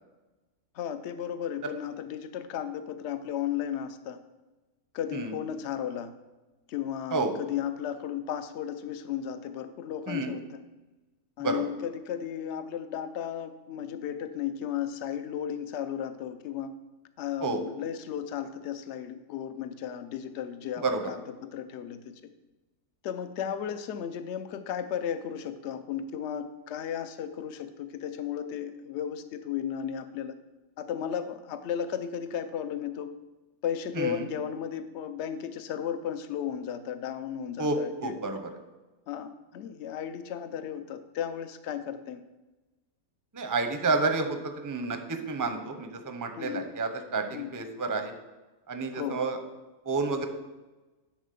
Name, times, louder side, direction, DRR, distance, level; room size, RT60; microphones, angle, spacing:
voice 1, 0.7-4.2 4.9-6.1 6.7-10.6 11.4-16.7 17.2-22.2 23.0-30.4 30.8-33.1 33.6-38.2 39.1-42.2 46.4-46.7 47.3-47.5 48.9-49.2, left 9 dB, 60° left, 10 dB, 0.9 m, -34 dB
voice 2, 37.6-38.5 43.3-45.0 45.3-48.1 48.7-49.4 49.9-50.3, right 3 dB, 20° right, 6 dB, 0.6 m, -30 dB
11.0 x 4.2 x 6.8 m, 1.1 s
omnidirectional pair, 1.5 m